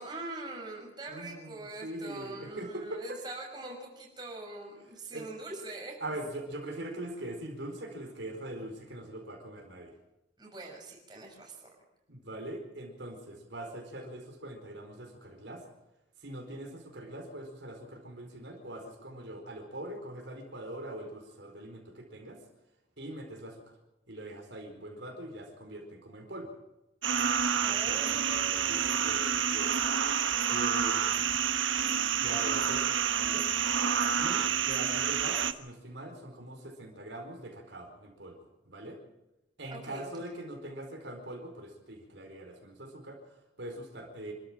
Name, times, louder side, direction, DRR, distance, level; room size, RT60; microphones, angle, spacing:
voice 1, 0.0-6.0 10.4-11.6 27.6-29.1 34.0-34.4 39.7-40.1, right 2 dB, 20° right, 0 dB, 6.3 m, -43 dB
voice 2, 1.1-3.2 5.1-5.3 6.0-9.9 12.1-15.6 16.2-22.4 23.0-23.6 24.1-26.5 27.5-29.8 30.5-31.4 32.2-33.5 34.2-38.4 38.7-39.0 39.6-44.3, right 1 dB, 70° right, 2 dB, 4.7 m, -42 dB
sound 1, 27.0-35.5, right 8 dB, 85° right, 1.3 m, -28 dB
27.5 x 13.5 x 7.5 m, 0.94 s
head